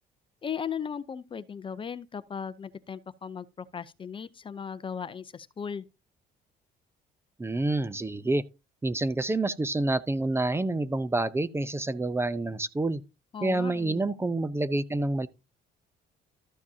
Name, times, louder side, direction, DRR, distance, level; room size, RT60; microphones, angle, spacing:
voice 1, 0.4-5.9 13.3-14.0, left 7 dB, 30° left, 0.6 m, -37 dB
voice 2, 7.4-8.4 8.8-13.0 13.4-15.3, right 2 dB, 15° right, 0.6 m, -28 dB
13.0 x 7.2 x 2.8 m
cardioid pair, 110°, 17 cm